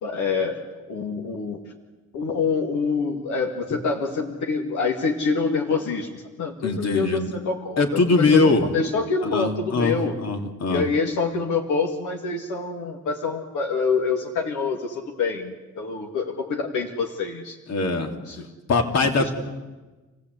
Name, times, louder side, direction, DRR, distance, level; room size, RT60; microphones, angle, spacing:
voice 1, 0.0-1.6 2.1-10.1 10.7-17.6 18.2-18.4 19.2-19.3, left 4 dB, 80° left, 1 dB, 2.3 m, -26 dB
voice 2, 6.6-7.3 7.8-8.6 9.3-10.9 17.7-18.1 18.7-19.3, left 3 dB, 60° left, 4 dB, 3.1 m, -21 dB
29.0 x 16.5 x 8.3 m, 1.2 s
cardioid pair, 90°, 30 cm